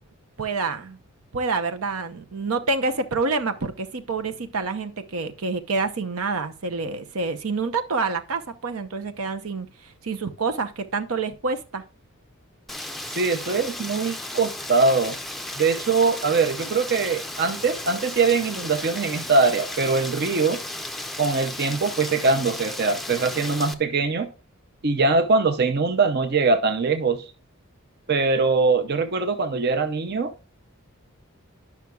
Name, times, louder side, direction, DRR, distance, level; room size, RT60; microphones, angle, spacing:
voice 1, 0.4-1.0 1.3-11.8, right 3 dB, 80° right, 0.8 m, -27 dB
Rain, 12.7-23.7, left 1 dB, ahead, 0.5 m, -34 dB
voice 2, 13.2-15.2 15.5-20.6 21.2-24.3 24.8-27.2 28.1-30.3, right 4 dB, 50° right, 0.5 m, -22 dB
10.5 x 5.8 x 2.3 m
head